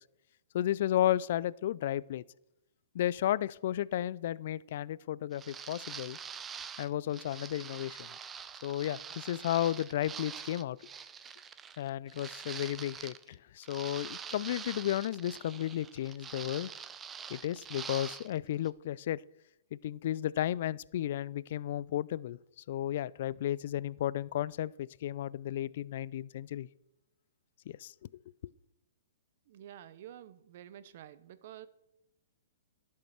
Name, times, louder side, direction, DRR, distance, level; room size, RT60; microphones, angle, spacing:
voice 1, 0.5-2.2 2.9-6.2 6.8-8.1 8.6-10.8 11.8-16.7 17.3-19.2 19.7-22.4 22.7-26.7 27.7-28.2, left 12 dB, 55° left, 0.3 m, -33 dB
sound 1, 5.3-13.3 13.6-18.4 18.6-18.7, right 7 dB, 15° right, 0.5 m, -45 dB
voice 2, 29.5-31.7, right 11 dB, 55° right, 0.8 m, -50 dB
11.5 x 6.5 x 5.8 m
hypercardioid pair, 135°, 0 cm